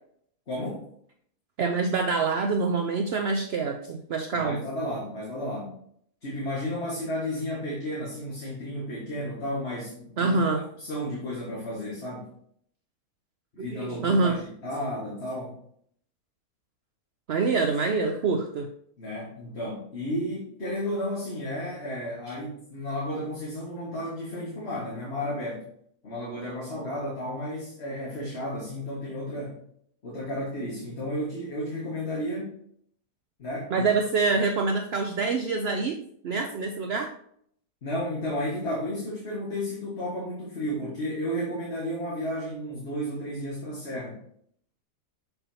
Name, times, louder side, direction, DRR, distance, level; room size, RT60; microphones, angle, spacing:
voice 1, 0.5-0.9 4.3-5.8 6.2-12.2 13.5-15.5 19.0-25.6 26.0-29.6 30.0-32.6 33.4-33.9 37.8-44.2, equal, 40° left, -5 dB, 1.9 m, -33 dB
voice 2, 1.6-4.6 10.2-10.6 13.6-14.4 17.3-18.7 33.7-36.0 36.2-37.1, right 4 dB, 65° right, 4 dB, 0.6 m, -25 dB
6.9 x 5.8 x 2.8 m, 0.66 s
omnidirectional pair, 1.7 m